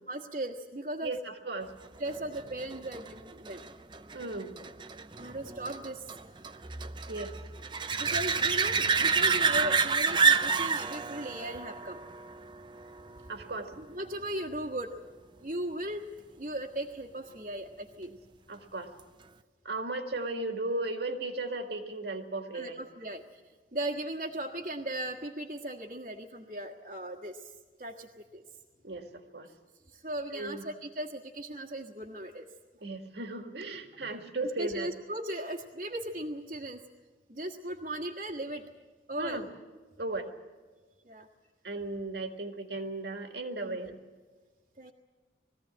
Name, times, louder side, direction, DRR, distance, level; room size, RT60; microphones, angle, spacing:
voice 1, 0.1-1.1 2.0-3.6 5.2-6.0 8.0-12.0 13.8-14.9 15.4-18.1 22.5-23.4 23.7-27.5 27.8-28.4 29.9-32.5 34.4-36.8 37.3-38.7 39.1-39.4 41.0-41.3 43.6-43.8 44.8-44.9, right 1 dB, 50° right, -2 dB, 1.5 m, -37 dB
voice 2, 1.0-1.7 4.1-4.6 7.1-7.3 13.3-13.7 18.5-18.9 19.6-22.8 28.8-29.5 30.3-30.6 32.8-34.9 39.2-39.5 40.0-40.3 41.6-44.0, right 2 dB, 70° right, 5 dB, 2.0 m, -36 dB
sound 1, 2.1-13.4 19.0-19.1, right 5 dB, 25° right, 0.6 m, -29 dB
22.0 x 15.5 x 8.7 m, 1.4 s
head